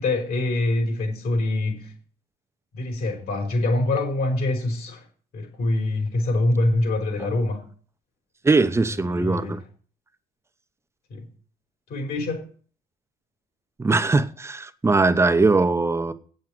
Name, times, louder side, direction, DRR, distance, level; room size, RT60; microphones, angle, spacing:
voice 1, 0.0-1.9 2.7-5.0 5.3-7.6 8.9-9.6 11.1-11.3 11.9-12.4, left 2 dB, 65° left, 4.9 m, -25 dB
voice 2, 8.4-9.6 13.8-16.1, right 3 dB, 15° right, 0.9 m, -20 dB
8.5 x 7.7 x 7.7 m
cardioid pair, 110°, 17 cm